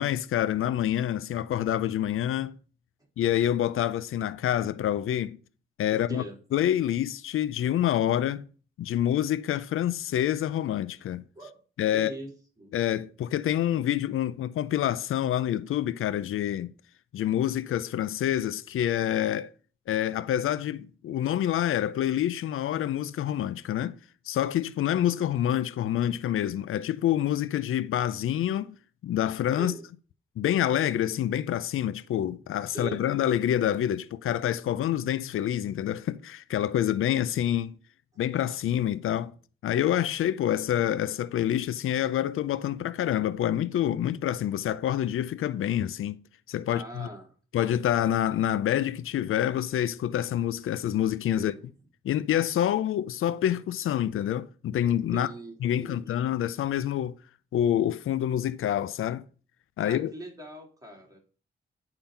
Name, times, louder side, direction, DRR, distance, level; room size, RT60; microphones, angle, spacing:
voice 1, 0.0-2.5 3.2-5.4 5.8-6.2 6.5-8.4 8.8-11.2 11.8-12.1 12.7-16.7 17.1-19.5 19.9-24.0 24.3-28.7 29.0-29.7 30.4-37.8 38.2-39.3 39.6-46.2 46.5-47.1 47.5-51.5 52.0-55.3 55.6-57.2 57.5-59.2 59.8-60.1, left 11 dB, 85° left, 0.5 m, -27 dB
voice 2, 11.9-12.3 12.6-12.7 21.1-21.2 29.6-29.8 32.7-33.2 46.7-47.3 51.4-51.7 55.1-56.0 59.8-61.2, right 2 dB, 15° right, 3.3 m, -41 dB
8.6 x 3.9 x 5.5 m
cardioid pair, 50°, 21 cm